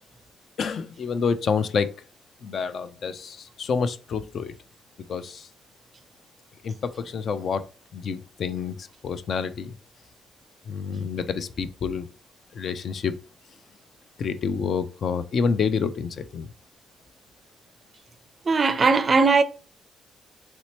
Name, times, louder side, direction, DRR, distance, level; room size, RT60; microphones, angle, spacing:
voice 1, 0.6-2.0 2.4-4.5 5.1-5.5 6.6-7.7 7.9-9.8 10.7-12.1 12.5-13.2 14.2-16.5, left 5 dB, 55° left, 0.4 m, -28 dB
voice 2, 18.5-19.4, right 4 dB, 35° right, 0.4 m, -19 dB
3.3 x 2.9 x 2.8 m
cardioid pair, 90°, 0 cm